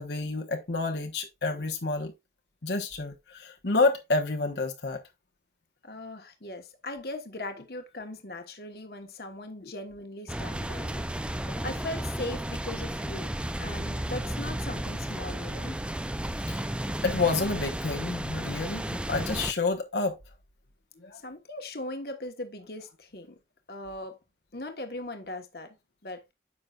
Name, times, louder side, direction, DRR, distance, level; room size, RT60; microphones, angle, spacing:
voice 1, 0.0-2.1 2.6-5.0 9.6-9.7 11.3-11.6 16.5-20.2 21.0-21.2, left 3 dB, 80° left, 1.2 m, -29 dB
voice 2, 5.8-11.0 11.4-13.3 13.6-15.8 21.1-23.4 23.7-24.2 24.5-25.8 26.0-26.2, left 2 dB, 60° left, 1.3 m, -39 dB
sound 1, 10.3-19.5, right 1 dB, 5° right, 0.4 m, -33 dB
9.7 x 6.2 x 2.4 m
head